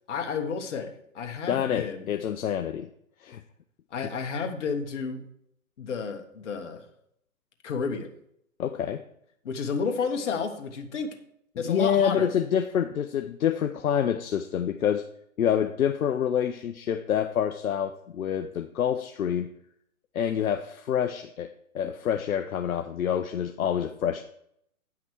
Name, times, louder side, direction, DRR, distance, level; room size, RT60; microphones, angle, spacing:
voice 1, 0.1-2.1 3.9-5.2 5.8-6.8 7.6-8.1 9.4-11.2 11.6-12.3, left 5 dB, 55° left, 4 dB, 1.5 m, -31 dB
voice 2, 1.5-2.9 3.2-3.4 8.6-9.0 11.7-15.0 15.4-19.5 20.1-24.2, left 9 dB, 75° left, 6 dB, 0.7 m, -27 dB
9.7 x 5.9 x 4.6 m, 0.73 s
hypercardioid pair, 145°, 42 cm